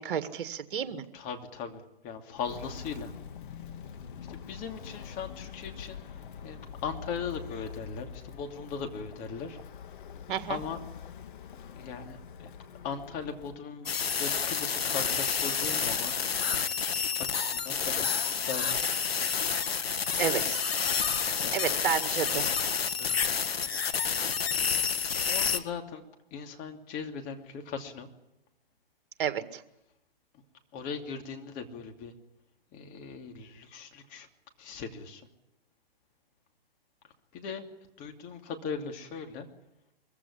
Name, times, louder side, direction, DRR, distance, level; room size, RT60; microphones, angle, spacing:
voice 1, 0.0-1.0 10.3-10.6 20.2-20.6 21.3-22.4 29.2-29.6, right 8 dB, 60° right, 10 dB, 2.0 m, -31 dB
voice 2, 1.1-3.1 4.3-6.0 6.4-9.6 10.5-10.8 11.8-12.5 12.8-18.9 21.4-21.6 23.0-23.4 24.3-25.0 25.3-26.0 26.3-28.1 30.7-32.1 32.7-34.3 34.6-35.3 37.3-37.7 38.0-39.5, left 6 dB, 25° left, 4 dB, 2.8 m, -39 dB
Walk footsteps, 2.3-13.6, left 7 dB, 55° left, 1.7 m, -45 dB
sound 1, 13.9-25.6, left 6 dB, 80° left, 1.8 m, -29 dB
23.5 x 15.5 x 10.0 m, 0.92 s
hypercardioid pair, 135°, 30 cm